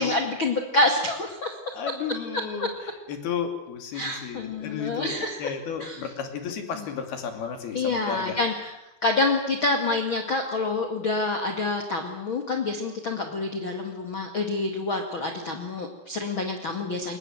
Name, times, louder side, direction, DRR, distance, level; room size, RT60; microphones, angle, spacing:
voice 1, 0.0-1.6 2.6-2.7 3.9-5.4 5.8-6.0 7.7-8.7 9.0-17.2, left 2 dB, 40° left, 4 dB, 2.1 m, -27 dB
voice 2, 1.7-8.4, left 7 dB, 75° left, 6 dB, 4.6 m, -33 dB
23.0 x 20.5 x 7.8 m, 0.96 s
omnidirectional pair, 4.6 m